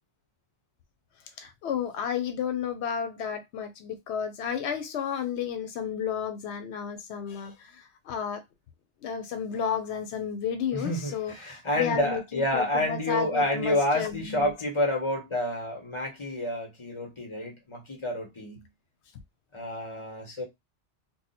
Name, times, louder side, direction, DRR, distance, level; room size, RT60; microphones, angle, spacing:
voice 1, 1.4-8.4 9.0-14.5, left 7 dB, 85° left, 0.9 m, -32 dB
voice 2, 10.7-18.6 19.5-20.4, left 1 dB, 30° left, 1.3 m, -29 dB
2.7 x 2.2 x 4.1 m
omnidirectional pair, 1.1 m